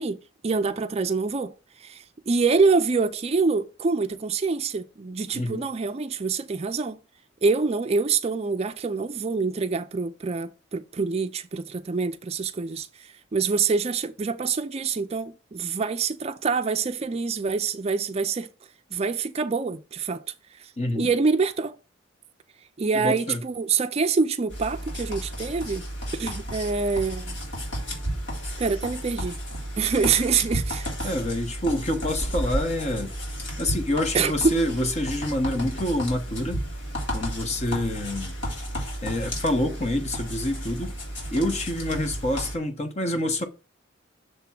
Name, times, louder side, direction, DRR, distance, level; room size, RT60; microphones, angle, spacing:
voice 1, 0.0-7.0 7.4-18.5 18.9-20.2 20.6-20.7 21.0-21.8 22.8-25.8 26.1-27.4 28.6-29.4 29.8-31.1 34.1-34.5, right 4 dB, 30° right, 0.4 m, -26 dB
voice 2, 20.8-21.1 22.9-23.4 31.0-33.1 33.6-36.6 37.1-38.4 39.0-40.9 41.3-43.5, left 1 dB, 35° left, 1.1 m, -27 dB
sound 1, 24.5-42.6, equal, 70° left, 3.0 m, -32 dB
6.7 x 3.5 x 5.8 m
head